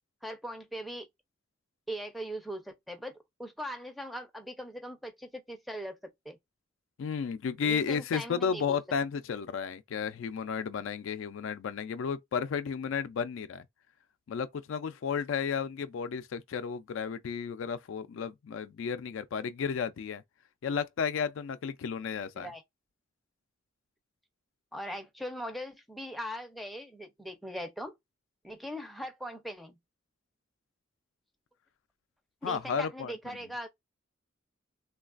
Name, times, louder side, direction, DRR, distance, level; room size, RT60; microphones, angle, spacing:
voice 1, 0.2-1.1 1.9-6.0 6.3-6.4 7.6-8.8 22.4-22.6 24.7-28.0 28.4-29.8 32.4-33.7, equal, ahead, 0.5 m, -40 dB
voice 2, 7.0-13.6 14.3-20.2 20.6-22.5 32.4-33.1, left 6 dB, 75° left, 0.4 m, -33 dB
3.1 x 2.3 x 2.4 m
head